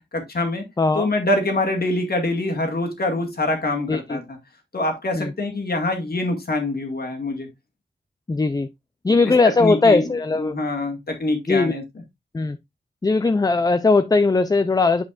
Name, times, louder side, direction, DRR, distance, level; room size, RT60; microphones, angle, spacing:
voice 1, 0.1-0.6 0.9-4.2 4.7-7.5 9.2-9.3 9.6-10.1 10.4-11.8, left 2 dB, 55° left, 2.0 m, -24 dB
voice 2, 0.8-1.1 3.9-4.2 5.1-5.3 8.3-8.7 9.0-10.6 11.5-11.8 12.3-12.6 13.0-15.0, left 3 dB, 20° left, 0.4 m, -19 dB
8.4 x 5.1 x 2.4 m
wide cardioid pair, 95°, 19 cm